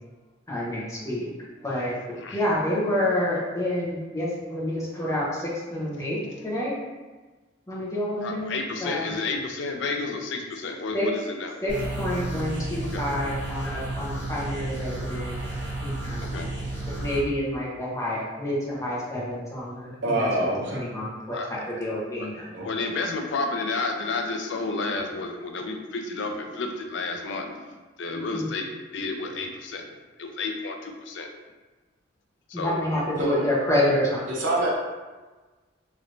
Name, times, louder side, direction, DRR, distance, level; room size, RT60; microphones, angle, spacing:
voice 1, 0.5-1.3 1.6-6.7 7.7-9.1 10.9-11.1 11.6-15.4 15.8-16.3 16.9-22.5 28.3-28.5 32.5-34.2, left 1 dB, 15° left, -7 dB, 0.9 m, -28 dB
voice 2, 8.2-11.6 12.9-13.0 16.2-16.5 21.3-21.5 22.2-22.3 22.6-29.9 30.2-31.3 32.5-32.8, left 3 dB, 75° left, 4 dB, 0.4 m, -31 dB
sound 1, 11.7-17.3, right 2 dB, 10° right, 1.1 m, -32 dB
voice 3, 20.0-20.9 22.5-22.7 33.2-33.5 34.3-34.7, right 1 dB, 85° right, -3 dB, 0.6 m, -25 dB
3.1 x 3.0 x 2.6 m, 1.3 s
head